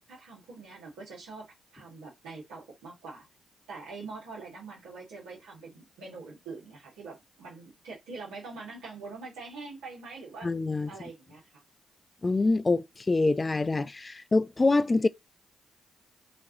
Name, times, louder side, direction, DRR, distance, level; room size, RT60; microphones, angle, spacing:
voice 1, 0.1-1.5 1.7-3.3 3.7-10.5 10.9-11.6, right 4 dB, 90° right, 2.0 m, -44 dB
voice 2, 10.4-10.9 12.2-15.1, left 3 dB, 30° left, 0.5 m, -25 dB
5.5 x 2.9 x 2.9 m
supercardioid pair, 50°, 0 cm